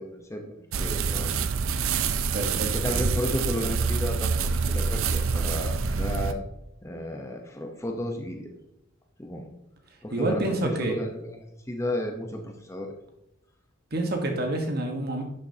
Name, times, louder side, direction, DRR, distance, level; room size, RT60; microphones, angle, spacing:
voice 1, 0.0-1.4 2.7-6.4 6.8-8.5 9.2-9.5 10.0-11.4 11.7-12.9, left 1 dB, 15° left, 3 dB, 0.8 m, -33 dB
sound 1, 0.7-6.3, right 5 dB, 75° right, 0.5 m, -26 dB
voice 2, 2.3-2.7 10.1-11.0 13.9-15.2, right 2 dB, 50° right, 3 dB, 1.3 m, -27 dB
11.5 x 7.0 x 2.8 m, 0.83 s
head